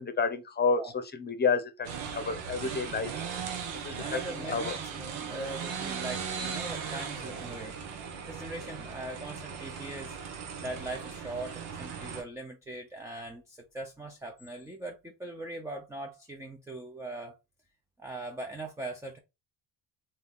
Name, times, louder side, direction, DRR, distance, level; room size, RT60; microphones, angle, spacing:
voice 1, 0.0-3.3 3.8-4.7, left 5 dB, 20° left, 0.8 m, -30 dB
sound 1, 1.8-12.2, right 6 dB, 85° right, 1.2 m, -38 dB
voice 2, 4.0-10.2 10.6-17.3 18.0-19.2, right 2 dB, 5° right, 0.5 m, -41 dB
4.0 x 2.7 x 3.6 m
cardioid pair, 110°, 48 cm